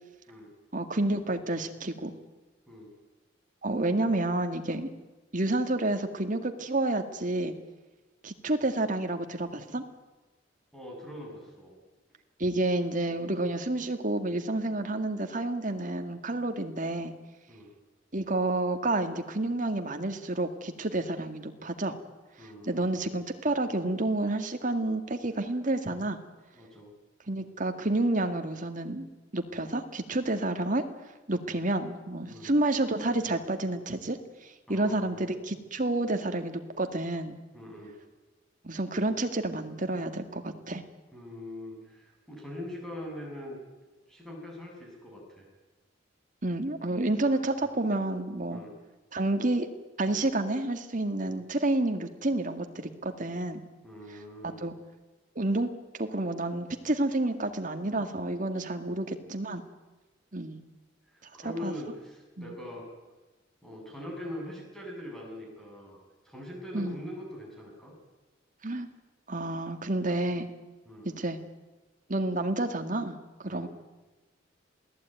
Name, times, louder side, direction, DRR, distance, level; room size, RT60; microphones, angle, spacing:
voice 1, 0.7-2.1 3.6-4.9 5.3-7.5 8.2-9.8 12.4-17.1 18.1-22.0 22.6-26.2 27.3-29.1 29.3-30.8 31.3-37.4 38.6-40.8 46.4-48.6 49.1-49.7 50.0-53.6 54.4-54.7 55.4-55.7 56.0-59.6 60.3-60.6 61.4-61.7 62.4-62.5 66.7-67.0 68.6-68.9 69.3-70.5 71.1-71.4 72.1-73.2 73.4-73.7, right 2 dB, 40° right, 7 dB, 2.0 m, -29 dB
voice 2, 10.7-11.7 17.5-17.7 22.4-22.9 26.5-26.9 32.3-32.6 34.7-35.3 37.5-37.9 41.1-43.6 44.1-45.5 47.6-47.7 48.5-48.7 51.3-51.4 53.8-54.6 58.9-59.0 61.1-62.9 63.6-66.0 66.2-67.9 70.8-71.1 73.5-73.7, left 1 dB, ahead, -1 dB, 7.8 m, -42 dB
27.5 x 18.0 x 9.2 m, 1.2 s
head